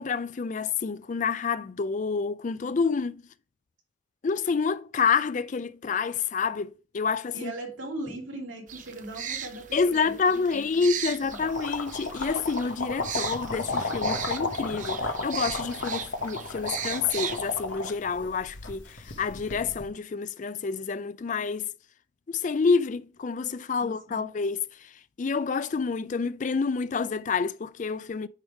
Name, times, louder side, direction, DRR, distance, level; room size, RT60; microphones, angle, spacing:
voice 1, 0.0-3.2 4.2-7.5 9.7-21.7 22.3-24.9 25.2-28.3, left 5 dB, 40° left, 0.4 m, -28 dB
voice 2, 7.3-11.4 23.8-24.2, right 2 dB, 85° right, 2.7 m, -40 dB
sound 1, 8.7-17.6, right 8 dB, 40° right, 0.6 m, -38 dB
sound 2, 11.3-19.8, left 3 dB, 65° left, 1.1 m, -33 dB
9.8 x 3.5 x 4.7 m
head